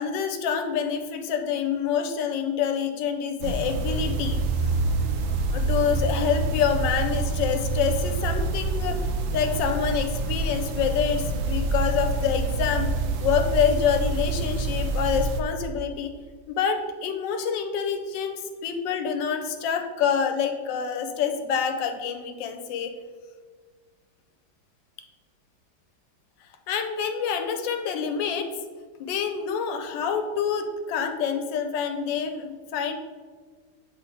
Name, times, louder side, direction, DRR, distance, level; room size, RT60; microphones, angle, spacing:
voice 1, 0.0-4.4 5.5-9.0 9.3-12.9 13.2-16.1 16.5-22.9 26.7-28.5 29.0-33.0, left 7 dB, 80° left, 6 dB, 1.3 m, -27 dB
sound 1, 3.4-15.4, right 3 dB, 70° right, 0.7 m, -27 dB
7.7 x 3.7 x 4.5 m, 1.5 s
omnidirectional pair, 2.0 m